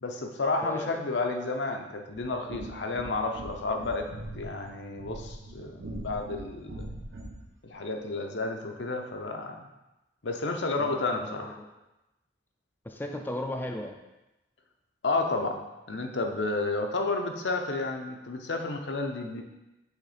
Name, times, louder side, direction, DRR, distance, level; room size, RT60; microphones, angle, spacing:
voice 1, 0.0-4.1 4.3-6.9 7.6-9.6 10.2-11.6 15.0-15.6 15.9-19.4, left 3 dB, 75° left, 4 dB, 0.7 m, -31 dB
voice 2, 0.6-1.0 10.8-11.7 12.9-14.0, left 1 dB, 10° left, 3 dB, 0.3 m, -36 dB
sound 1, 2.1-7.5, right 1 dB, 80° right, 0.8 m, -42 dB
6.4 x 3.2 x 5.0 m, 0.99 s
head